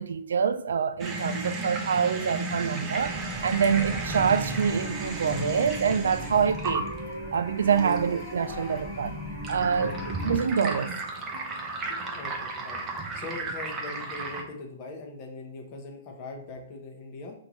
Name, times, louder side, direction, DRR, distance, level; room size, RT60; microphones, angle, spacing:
voice 1, 0.0-6.9 7.3-9.2 9.5-9.9 10.2-11.0, right 6 dB, 90° right, 0.3 m, -26 dB
sound 1, 1.0-14.4, right 3 dB, 15° right, 0.5 m, -35 dB
sound 2, 2.9-10.4, equal, ahead, 1.3 m, -36 dB
sound 3, 3.8-12.5, left 3 dB, 75° left, 0.5 m, -49 dB
voice 2, 12.1-12.8 13.1-17.3, left 3 dB, 25° left, 0.8 m, -41 dB
5.2 x 2.6 x 3.0 m
hypercardioid pair, 170°, 0 cm